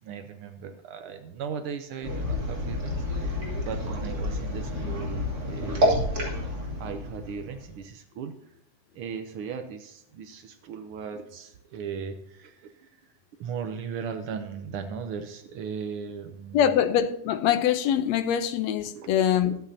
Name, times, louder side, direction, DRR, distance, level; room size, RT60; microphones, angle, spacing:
voice 1, 0.0-6.4 6.8-8.3 8.9-12.9 13.4-16.6 18.9-19.1 19.4-19.5, right 6 dB, 85° right, 1.2 m, -37 dB
sound 1, 2.0-7.8, left 1 dB, 30° right, 2.8 m, -29 dB
voice 2, 16.5-19.6, left 9 dB, 75° left, 1.8 m, -23 dB
23.0 x 8.2 x 2.8 m
omnidirectional pair, 3.5 m